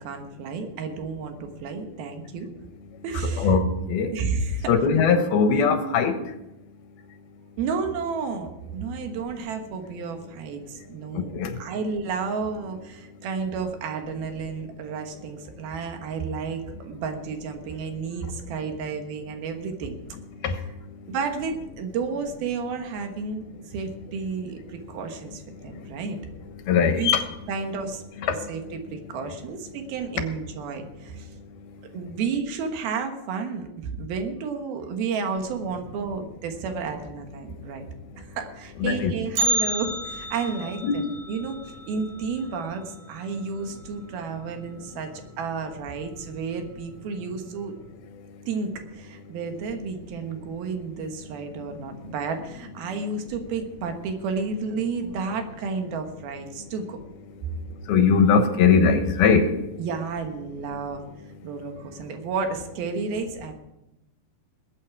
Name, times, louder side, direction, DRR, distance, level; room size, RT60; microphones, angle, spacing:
voice 1, 0.0-2.5 3.0-3.5 4.1-4.7 7.6-20.0 21.1-26.2 26.8-27.1 27.5-31.3 31.9-37.9 38.2-41.0 41.3-41.6 41.9-45.1 45.4-47.7 48.5-57.0 59.8-61.0 61.4-63.5, right 5 dB, 80° right, 3.2 m, -31 dB
voice 2, 3.4-4.2 4.7-6.2 11.1-11.6 20.4-20.6 26.7-27.2 28.2-28.5 38.8-39.1 39.4-39.5 40.8-41.0 57.9-59.5, left 5 dB, 85° left, 3.1 m, -20 dB
Bell, 39.4-43.4 43.7-43.8 44.3-44.4 45.2-45.3 46.1-46.3 46.7-46.8, right 1 dB, 55° right, 3.8 m, -31 dB
21.0 x 8.4 x 4.8 m
omnidirectional pair, 4.3 m